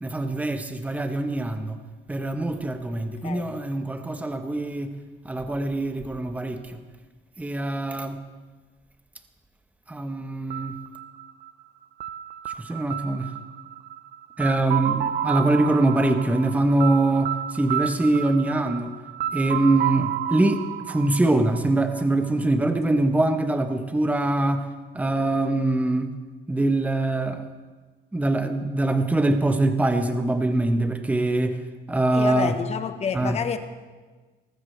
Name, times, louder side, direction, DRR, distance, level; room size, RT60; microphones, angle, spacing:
voice 1, 0.0-1.8 2.1-5.0 5.2-6.8 7.4-8.2 9.9-10.7 12.6-13.3 14.4-18.9 19.3-24.7 24.9-26.1 26.5-27.4 28.1-31.6 31.9-32.5 33.1-33.4, right 2 dB, 10° right, 7 dB, 1.0 m, -23 dB
sound 1, 10.5-22.3, right 10 dB, 60° right, 0.7 m, -31 dB
voice 2, 32.1-33.6, left 6 dB, 40° left, 9 dB, 1.2 m, -28 dB
19.5 x 14.5 x 3.3 m, 1.3 s
cardioid pair, 110°, 17 cm